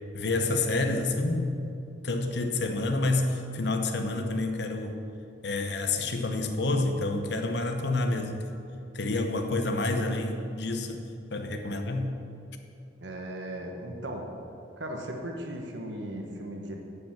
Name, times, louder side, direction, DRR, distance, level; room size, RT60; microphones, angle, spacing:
voice 1, 0.1-1.6 2.0-5.0 5.4-8.5 8.9-11.0 11.3-12.1, left 2 dB, 65° left, 5 dB, 0.8 m, -28 dB
voice 2, 13.0-14.3 14.8-16.7, right 1 dB, 75° right, 2 dB, 1.2 m, -37 dB
9.7 x 5.3 x 7.2 m, 2.6 s
head